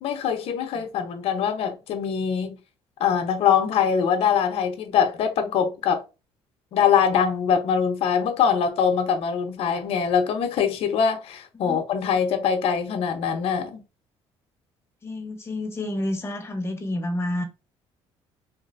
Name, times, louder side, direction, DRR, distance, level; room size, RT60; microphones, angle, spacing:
voice 1, 0.0-2.6 3.0-6.0 6.7-13.8, left 7 dB, 65° left, 0.7 m, -23 dB
voice 2, 15.0-17.4, left 1 dB, 25° left, 0.9 m, -29 dB
3.3 x 2.6 x 2.5 m
cardioid pair, 115°, 11 cm